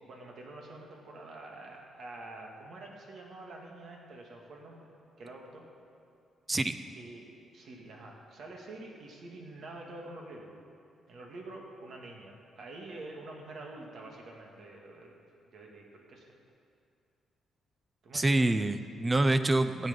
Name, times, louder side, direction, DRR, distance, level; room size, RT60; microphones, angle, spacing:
voice 1, 0.1-5.6 6.9-10.5 11.1-15.2 15.5-16.3 18.0-18.4, right 2 dB, 60° right, 0 dB, 2.2 m, -47 dB
voice 2, 18.1-19.9, right 2 dB, 20° right, 11 dB, 0.6 m, -26 dB
15.0 x 9.7 x 5.3 m, 2.5 s
cardioid pair, 100°, 0 cm